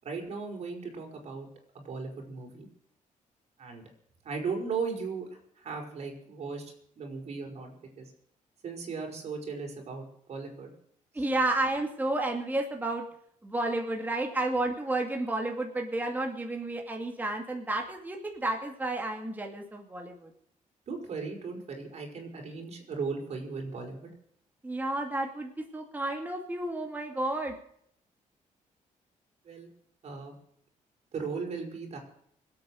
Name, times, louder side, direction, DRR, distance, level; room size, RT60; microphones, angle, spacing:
voice 1, 0.0-1.5 1.7-2.7 3.6-3.8 4.2-5.3 5.6-8.1 8.6-10.7 20.9-24.1 29.4-29.7 30.0-30.3 31.1-32.0, right 4 dB, 50° right, 2 dB, 5.7 m, -37 dB
voice 2, 11.1-13.0 13.4-20.3 24.6-27.6, right 2 dB, 15° right, 2 dB, 2.4 m, -31 dB
25.0 x 8.7 x 6.5 m, 0.67 s
cardioid pair, 135°, 14 cm